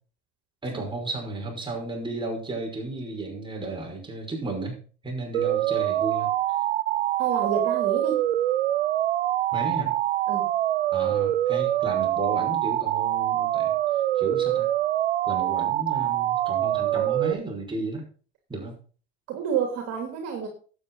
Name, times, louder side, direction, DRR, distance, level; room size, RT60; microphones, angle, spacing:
voice 1, 0.6-4.8 5.0-6.3 9.5-9.9 10.9-13.8 14.2-14.7 15.3-18.1 18.5-18.7, right 2 dB, 15° right, 0 dB, 5.8 m, -33 dB
sound 1, 5.3-17.3, right 13 dB, 90° right, 0.6 m, -25 dB
voice 2, 7.2-8.2 10.3-10.5 19.3-20.5, right 7 dB, 55° right, 3 dB, 3.2 m, -29 dB
12.0 x 8.9 x 4.1 m, 0.39 s
hypercardioid pair, 80°, 31 cm